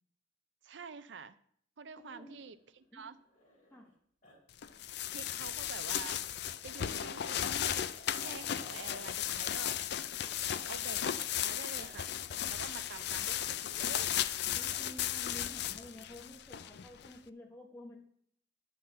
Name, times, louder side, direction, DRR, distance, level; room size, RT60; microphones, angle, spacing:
voice 1, 0.6-1.4 1.8-3.2 5.1-6.2 6.6-7.9 8.1-9.8 10.7-12.2 12.5-14.2, right 5 dB, 65° right, 13 dB, 0.6 m, -48 dB
Growling, 2.0-3.9 4.2-4.4 4.6-4.8 5.1-5.2 6.2-9.1 9.5-9.8 10.1-10.8 11.5-11.9 12.8-13.2 14.0-14.3 15.4-16.1, left 1 dB, 40° left, 3.0 m, -58 dB
voice 2, 2.1-2.4 2.9-3.1 3.7-3.9 14.5-18.0, left 1 dB, 10° left, -1 dB, 1.5 m, -51 dB
sound 1, 4.6-17.1, left 10 dB, 55° left, 0.4 m, -35 dB
11.5 x 3.9 x 7.7 m, 0.65 s
head